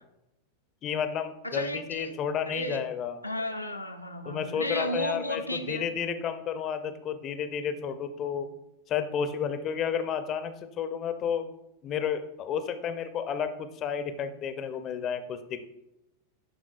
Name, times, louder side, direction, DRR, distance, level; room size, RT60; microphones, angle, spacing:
voice 1, 0.8-3.2 4.3-8.5 8.9-11.4 11.8-15.6, left 7 dB, 30° left, 10 dB, 0.5 m, -31 dB
voice 2, 1.4-2.2 2.5-2.8 3.2-5.8, equal, 85° left, 4 dB, 0.5 m, -33 dB
10.5 x 3.7 x 2.4 m, 0.87 s
figure-of-eight pair, 90°, 0 cm